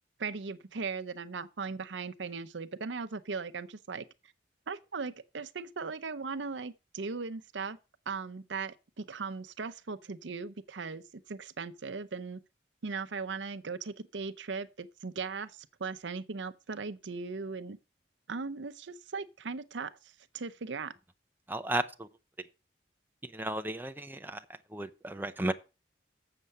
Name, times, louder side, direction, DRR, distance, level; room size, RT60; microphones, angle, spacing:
voice 1, 0.2-4.0 4.7-7.8 8.1-11.0 11.3-12.4 12.8-17.8 18.3-19.9 20.3-20.9, right 4 dB, 80° right, 0.7 m, -38 dB
voice 2, 21.5-22.1 23.2-24.4 24.7-25.5, right 1 dB, 10° right, 0.6 m, -34 dB
7.4 x 7.0 x 6.6 m
head